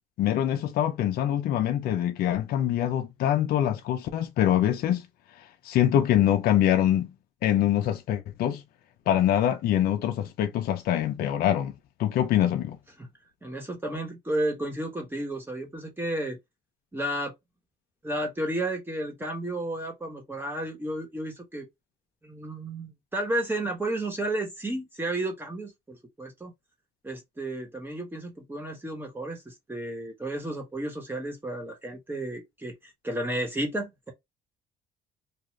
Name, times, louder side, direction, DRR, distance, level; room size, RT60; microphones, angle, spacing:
voice 1, 0.2-5.1 5.6-7.1 7.4-8.6 9.1-11.7 12.0-12.8, left 11 dB, 65° left, 0.5 m, -24 dB
voice 2, 13.4-16.4 16.9-17.3 18.0-21.7 22.2-26.5 27.0-34.1, right 1 dB, 10° right, 1.2 m, -32 dB
2.4 x 2.3 x 3.1 m
cardioid pair, 110°, 17 cm